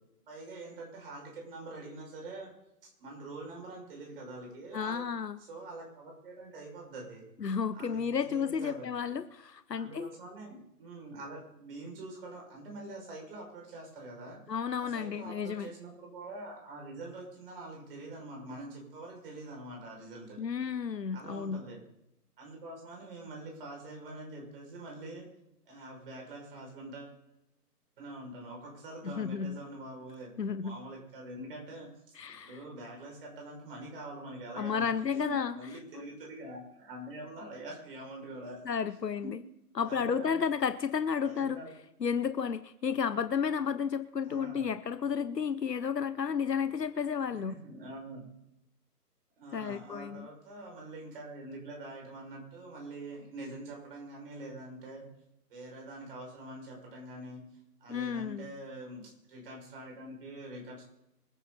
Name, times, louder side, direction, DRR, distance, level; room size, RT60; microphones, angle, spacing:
voice 1, 0.3-2.5 3.0-5.0 5.4-7.2 7.7-8.9 9.7-14.4 14.8-20.4 21.1-21.8 22.4-25.3 25.6-27.2 28.0-30.3 30.6-32.1 32.4-38.6 39.2-39.3 39.8-40.5 41.2-41.7 44.2-44.7 47.3-48.2 49.4-55.1 55.5-57.4 57.8-60.8, right 2 dB, 35° right, 0 dB, 6.2 m, -45 dB
voice 2, 4.7-5.4 7.4-10.1 14.5-15.7 20.4-21.6 29.0-29.6 30.4-30.8 32.2-32.6 34.6-35.5 35.9-36.1 38.6-39.4 39.8-41.6 42.0-47.5 49.5-50.3 57.9-58.5, left 6 dB, 85° left, 13 dB, 1.0 m, -32 dB
24.5 x 10.0 x 4.1 m, 0.84 s
figure-of-eight pair, 150°, 48 cm